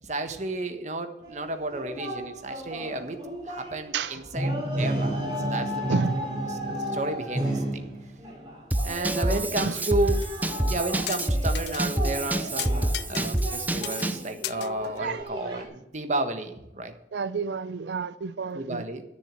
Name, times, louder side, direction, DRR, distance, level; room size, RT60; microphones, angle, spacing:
voice 1, 0.0-3.2 3.4-6.0 6.9-7.9 8.8-10.2 10.6-16.9 18.5-19.0, right 2 dB, 40° right, 1.4 m, -32 dB
sound 1, 1.2-15.6, equal, 25° right, 3.4 m, -33 dB
voice 2, 5.9-6.3 9.1-9.8 14.8-15.6 17.1-18.8, right 4 dB, 75° right, 0.5 m, -31 dB
Drum kit / Drum, 8.7-14.3, right 1 dB, 10° right, 0.5 m, -27 dB
sound 2, 9.8-9.9 10.2-10.3 11.1-11.8 12.2-12.3 12.6-13.6 13.8-14.1 14.4-15.2, left 15 dB, 65° left, 0.3 m, -36 dB
10.5 x 7.0 x 8.2 m
head